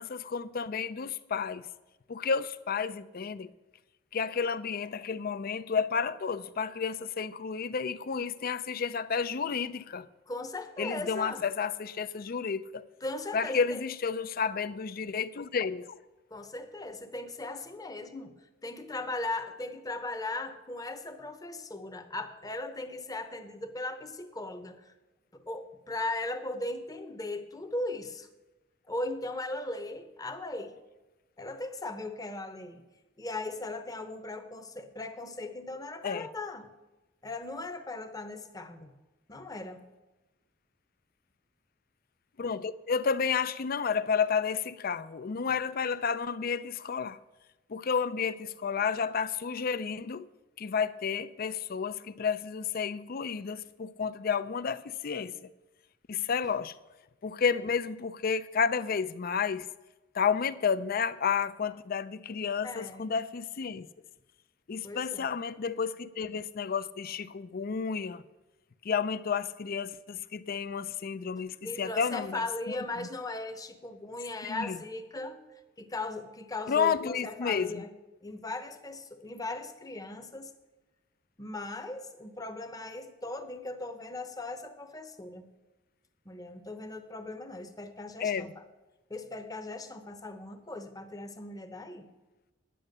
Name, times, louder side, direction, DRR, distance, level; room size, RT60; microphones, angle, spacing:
voice 1, 0.0-1.7 2.1-3.5 4.1-10.1 10.8-12.9 13.3-15.9 36.0-36.3 42.4-47.2 47.7-50.3 50.6-55.3 56.1-56.7 57.2-59.7 60.1-63.9 64.7-68.2 68.8-73.1 74.4-74.8 76.7-77.8 88.2-88.5, left 6 dB, 50° left, 0.5 m, -31 dB
voice 2, 10.3-11.4 13.0-13.8 16.3-18.3 18.6-24.9 25.3-28.3 28.9-30.8 31.4-32.8 33.2-36.7 37.2-38.9 39.3-39.8 62.6-63.1 64.8-65.3 71.6-75.4 75.8-77.9 78.2-80.5 81.4-85.5 86.2-88.5 89.1-92.1, left 2 dB, 20° left, 0.9 m, -38 dB
10.0 x 8.8 x 6.6 m
head